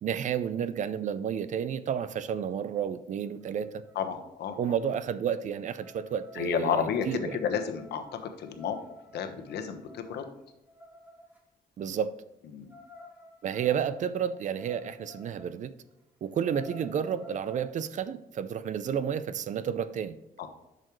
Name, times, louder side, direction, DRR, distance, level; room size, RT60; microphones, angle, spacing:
voice 1, 0.0-3.8 4.6-7.4 11.8-12.2 13.4-15.7 16.2-20.2, right 8 dB, 50° right, 14 dB, 0.5 m, -31 dB
sound 1, 3.5-3.6 3.8-4.1 4.5-11.4 12.7-15.5 15.9-16.0 16.3-17.7, left 1 dB, 10° right, 1.6 m, -52 dB
voice 2, 3.9-4.6 6.3-8.8 9.1-10.3 12.5-12.7 20.4-20.5, left 7 dB, 85° left, 6 dB, 1.2 m, -31 dB
10.5 x 6.5 x 3.1 m, 0.97 s
cardioid pair, 175°, 17 cm